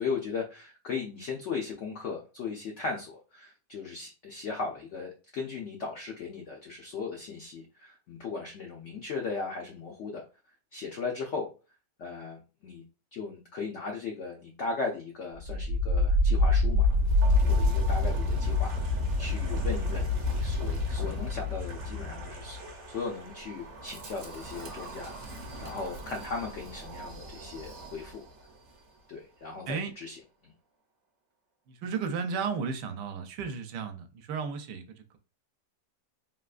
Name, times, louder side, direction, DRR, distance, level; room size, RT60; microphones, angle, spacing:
voice 1, 0.0-10.2 10.7-11.5 12.0-12.8 13.1-16.9 17.2-28.2 29.1-30.5, left 4 dB, 80° left, 0.6 m, -37 dB
Wind, 15.4-28.4, left 2 dB, 55° right, 1.0 m, -29 dB
voice 2, 31.7-35.2, right 6 dB, 80° right, 1.2 m, -34 dB
3.5 x 2.3 x 2.4 m
omnidirectional pair, 1.9 m